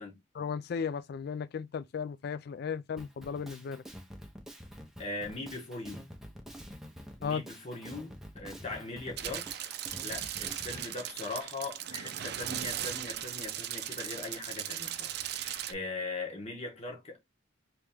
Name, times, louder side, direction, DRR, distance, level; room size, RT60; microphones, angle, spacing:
voice 1, 0.4-3.8 7.2-7.4, left 6 dB, 55° left, 0.3 m, -35 dB
Drum kit, 3.0-10.9, equal, ahead, 0.6 m, -47 dB
voice 2, 5.0-6.0 7.2-9.5 10.0-17.2, left 3 dB, 35° left, 1.3 m, -40 dB
sound 1, 9.2-15.7, right 11 dB, 55° right, 0.4 m, -38 dB
3.3 x 3.0 x 3.4 m
head